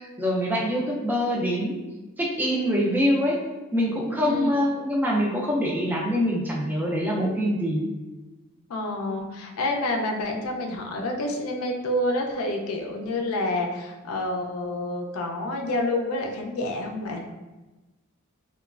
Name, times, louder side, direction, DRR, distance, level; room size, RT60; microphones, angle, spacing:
voice 1, 0.0-1.8 2.2-3.4 3.7-7.8, equal, 10° right, -3 dB, 0.3 m, -24 dB
voice 2, 4.2-4.6 8.7-17.2, left 1 dB, 75° left, 2 dB, 0.4 m, -28 dB
2.9 x 2.2 x 2.3 m, 1.1 s
head